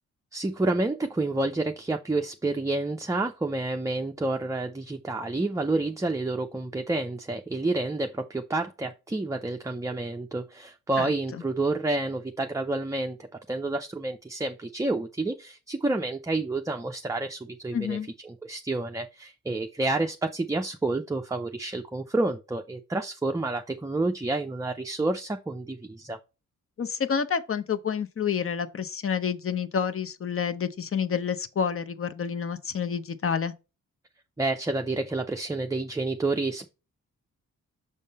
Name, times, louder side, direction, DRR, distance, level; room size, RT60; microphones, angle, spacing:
voice 1, 0.3-18.0 18.2-26.2 34.4-36.7, right 2 dB, 10° right, 0.5 m, -29 dB
voice 2, 17.7-18.1 26.8-33.5, left 7 dB, 40° left, 0.8 m, -29 dB
6.5 x 3.6 x 4.1 m
cardioid pair, 70°, 33 cm